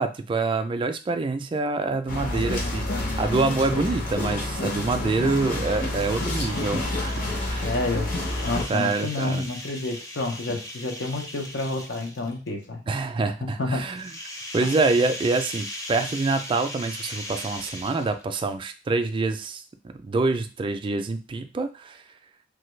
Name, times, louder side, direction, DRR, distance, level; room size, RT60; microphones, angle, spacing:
voice 1, 0.0-7.8 8.7-9.5 12.9-14.1 14.5-19.6 20.0-22.0, right 3 dB, 30° right, 8 dB, 0.3 m, -26 dB
voice 2, 2.1-3.1 7.6-8.2 8.4-12.8 13.4-13.9, left 2 dB, 80° left, 3 dB, 0.7 m, -30 dB
sound 1, 2.1-8.6, left 1 dB, 50° left, 0.8 m, -29 dB
sound 2, 5.0-12.5 13.9-18.4, left 1 dB, 20° left, 0.6 m, -39 dB
3.2 x 2.2 x 3.1 m, 0.32 s
head